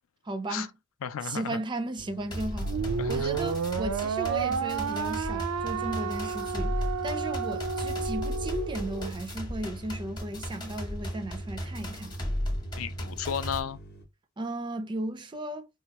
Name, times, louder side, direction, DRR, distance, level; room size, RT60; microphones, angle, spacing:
voice 1, 0.3-0.7 1.2-2.7 3.1-12.1 14.4-15.7, right 2 dB, 20° right, 0.4 m, -35 dB
voice 2, 1.0-1.6 3.0-3.5 12.8-13.8, left 8 dB, 70° left, 0.4 m, -34 dB
sound 1, 2.0-14.0, right 2 dB, 50° left, 0.8 m, -48 dB
sound 2, 2.3-13.6, equal, 20° left, 0.9 m, -35 dB
sound 3, 2.6-9.1, right 6 dB, 85° right, 0.4 m, -31 dB
4.3 x 2.2 x 2.9 m
head